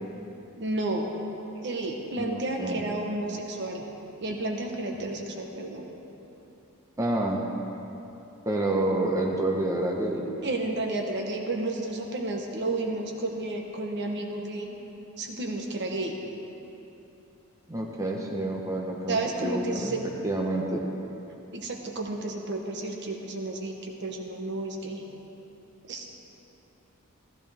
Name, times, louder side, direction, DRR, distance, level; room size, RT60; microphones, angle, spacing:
voice 1, 0.6-1.2 1.6-3.8 4.2-5.9 10.4-14.8 15.2-16.2 19.1-20.0 21.5-25.0 25.8-26.1, right 2 dB, 55° right, 2 dB, 1.2 m, -31 dB
voice 2, 2.2-2.8 7.0-7.4 8.4-10.3 17.7-19.9 20.2-20.8, right 1 dB, 15° right, -1 dB, 1.0 m, -28 dB
14.5 x 14.5 x 3.5 m, 3.0 s
head